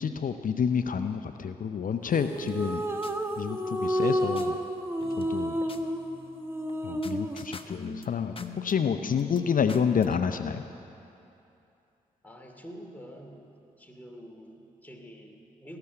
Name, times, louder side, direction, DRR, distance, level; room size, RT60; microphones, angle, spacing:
voice 1, 0.0-2.8 3.4-4.6 5.2-5.6 6.8-10.6, left 7 dB, 60° left, 9 dB, 0.6 m, -29 dB
sound 1, 2.1-7.5, equal, 15° right, 1.4 m, -31 dB
sound 2, 2.2-4.5 5.0-10.2, left 4 dB, 35° left, 1.0 m, -45 dB
voice 2, 12.2-13.5 13.8-15.8, equal, 10° left, 1 dB, 2.7 m, -47 dB
18.0 x 6.9 x 9.7 m, 2.7 s
supercardioid pair, 40°, 16 cm